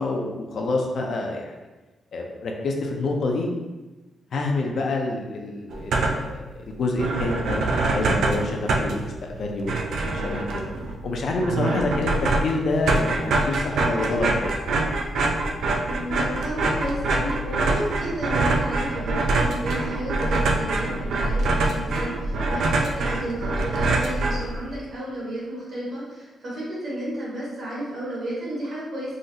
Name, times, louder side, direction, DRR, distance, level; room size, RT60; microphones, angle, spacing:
voice 1, 0.0-1.6 2.1-3.5 4.3-10.6 11.0-13.2 13.5-14.5, left 2 dB, 55° left, 1 dB, 0.4 m, -27 dB
sound 1, 5.7-6.4 6.7-6.8 7.0-24.8, right 2 dB, 75° right, 0.3 m, -25 dB
voice 2, 11.6-12.0 15.8-29.2, right 1 dB, 50° right, -7 dB, 1.3 m, -32 dB
3.7 x 2.0 x 2.6 m, 1.1 s
wide cardioid pair, 145°, 0 cm